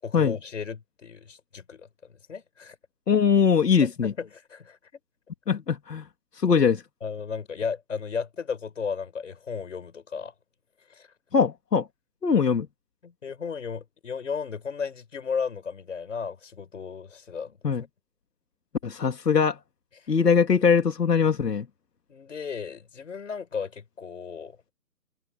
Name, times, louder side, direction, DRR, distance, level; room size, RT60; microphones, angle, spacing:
voice 1, 0.0-2.8 3.8-4.8 7.0-10.3 10.9-11.1 13.0-17.6 20.0-20.1 22.1-24.7, left 6 dB, 50° left, 6.4 m, -35 dB
voice 2, 3.1-4.1 5.5-6.1 6.3-6.8 11.3-11.9 12.2-12.7 17.6-17.8 18.8-19.6 20.1-21.7, left 6 dB, 75° left, 2.6 m, -21 dB
hypercardioid pair, 180°, 49 cm